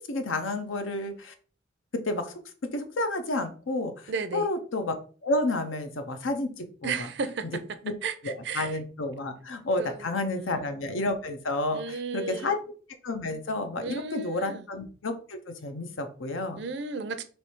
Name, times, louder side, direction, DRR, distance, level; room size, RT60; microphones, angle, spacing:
voice 1, 0.0-1.3 1.9-2.3 2.7-5.0 5.2-6.9 7.8-7.9 8.2-12.6 13.0-16.6, left 2 dB, 85° left, 0.7 m, -30 dB
voice 2, 4.1-4.5 6.8-7.6 8.0-8.8 9.8-10.1 10.3-10.5 11.7-12.6 13.8-14.6 16.6-17.2, right 5 dB, 60° right, 0.5 m, -34 dB
3.3 x 3.1 x 4.4 m
head